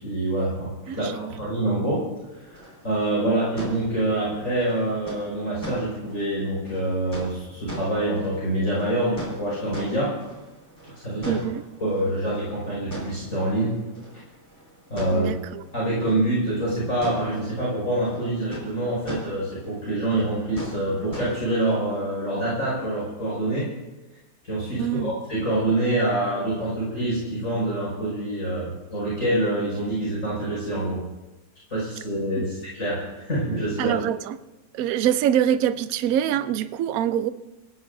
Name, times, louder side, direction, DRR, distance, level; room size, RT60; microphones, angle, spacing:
voice 1, 0.0-2.0 2.3-10.1 11.0-11.4 11.8-13.7 14.9-15.3 15.7-23.7 24.4-31.0 31.7-34.0, right 1 dB, 40° left, -7 dB, 6.0 m, -26 dB
voice 2, 0.9-1.5 11.3-11.6 15.1-15.6 24.8-25.2 32.4-32.5 33.8-34.4 34.7-37.3, right 10 dB, 65° right, 12 dB, 0.9 m, -25 dB
sound 1, 2.2-22.0, right 1 dB, 10° left, 4.9 m, -42 dB
26.0 x 16.0 x 2.7 m, 1.1 s
omnidirectional pair, 2.0 m